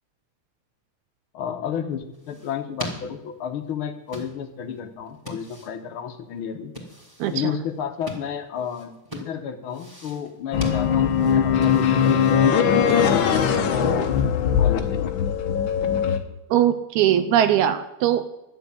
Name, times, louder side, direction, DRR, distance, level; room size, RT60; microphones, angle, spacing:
voice 1, 1.3-6.7 7.3-13.7 14.6-15.0, left 8 dB, 70° left, 7 dB, 1.2 m, -32 dB
sound 1, 1.9-14.2, equal, 5° right, 2.1 m, -42 dB
voice 2, 7.2-7.5 16.5-18.3, right 10 dB, 80° right, 11 dB, 1.8 m, -20 dB
sound 2, 10.5-16.2, left 7 dB, 85° left, 1.0 m, -20 dB
12.0 x 7.9 x 9.8 m, 0.90 s
omnidirectional pair, 3.8 m